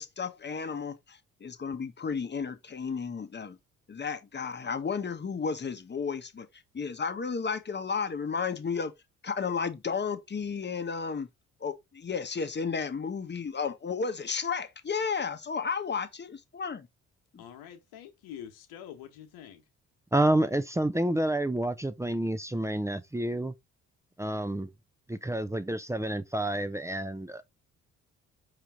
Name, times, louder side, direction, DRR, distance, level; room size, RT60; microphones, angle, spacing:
voice 1, 0.0-3.6 3.9-6.5 6.7-8.9 9.2-11.3 11.6-16.9 17.3-17.4, left 5 dB, 30° left, 0.9 m, -33 dB
voice 2, 17.4-19.6, left 10 dB, 75° left, 1.2 m, -46 dB
voice 3, 20.1-23.5 24.2-24.7 25.1-27.4, right 1 dB, 10° right, 0.5 m, -29 dB
4.9 x 2.9 x 3.5 m
hypercardioid pair, 50°, 37 cm